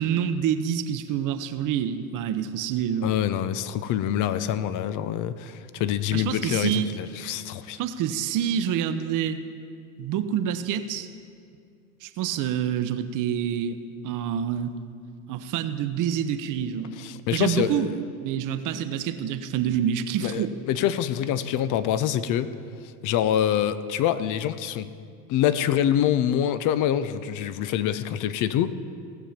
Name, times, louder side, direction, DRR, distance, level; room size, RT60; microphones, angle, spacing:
voice 1, 0.0-3.2 6.1-6.9 7.8-9.4 10.0-11.1 12.0-13.8 14.0-14.7 15.3-16.9 17.3-17.9 18.2-20.5, right 9 dB, 45° right, 10 dB, 0.9 m, -27 dB
voice 2, 3.0-7.8 17.0-17.9 20.2-22.5 23.0-24.9 25.3-28.7, left 10 dB, 45° left, 14 dB, 0.7 m, -25 dB
18.0 x 7.0 x 5.9 m, 2.3 s
hypercardioid pair, 100°, 45 cm